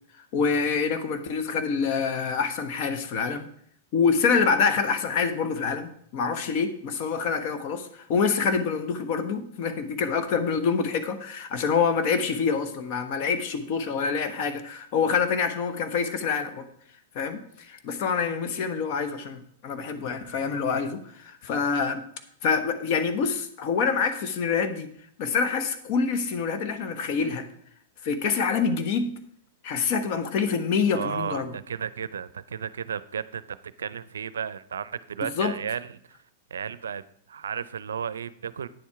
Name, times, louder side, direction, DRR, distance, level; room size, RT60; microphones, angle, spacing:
voice 1, 0.3-3.5 3.9-16.6 17.1-22.0 22.4-24.9 25.2-27.5 28.0-29.1 29.6-31.5 35.2-35.6, left 5 dB, 50° left, 9 dB, 1.2 m, -26 dB
voice 2, 30.9-33.4 33.8-35.9 36.5-38.7, right 7 dB, 80° right, 16 dB, 0.4 m, -33 dB
9.5 x 7.2 x 4.7 m, 0.67 s
hypercardioid pair, 115°, 0 cm